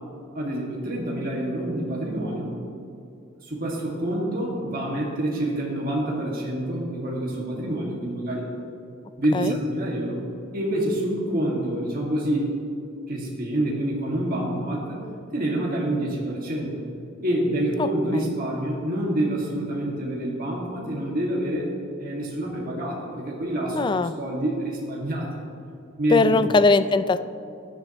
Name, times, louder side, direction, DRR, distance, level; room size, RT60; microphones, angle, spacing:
voice 1, 0.3-2.5 3.4-8.5 9.2-10.2 10.5-12.5 13.1-15.1 15.3-16.8 17.2-21.7 22.0-25.3 26.0-26.4, right 1 dB, 45° right, -3 dB, 1.9 m, -27 dB
voice 2, 23.7-24.2 26.1-27.2, left 3 dB, 20° left, 13 dB, 0.3 m, -20 dB
16.5 x 10.5 x 3.0 m, 2.5 s
head